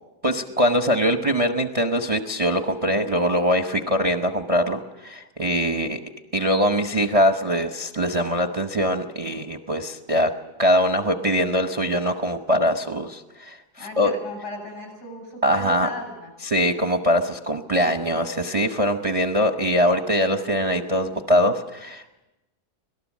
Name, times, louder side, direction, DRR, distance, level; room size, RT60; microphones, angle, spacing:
voice 1, 0.2-6.0 6.3-10.3 10.6-14.1 15.4-15.9 16.4-22.2, equal, 30° right, 5 dB, 0.8 m, -22 dB
voice 2, 13.8-16.3, left 2 dB, 65° left, 4 dB, 8.2 m, -36 dB
25.5 x 18.5 x 7.4 m, 1.0 s
omnidirectional pair, 1.8 m